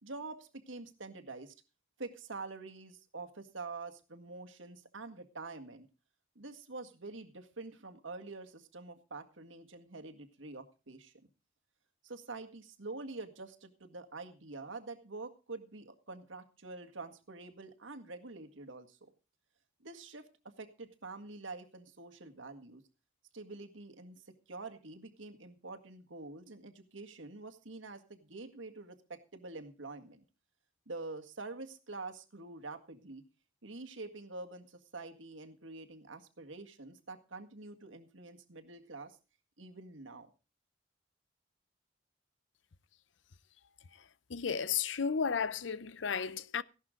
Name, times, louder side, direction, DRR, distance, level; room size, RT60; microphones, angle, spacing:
voice 1, 0.0-1.5 2.0-5.9 6.4-11.1 12.0-19.1 19.8-22.8 23.3-30.2 30.9-33.2 33.6-39.2 39.6-40.3, right 3 dB, 85° right, 1.9 m, -46 dB
voice 2, 44.3-46.6, left 6 dB, 70° left, 0.6 m, -33 dB
15.5 x 12.0 x 3.8 m
head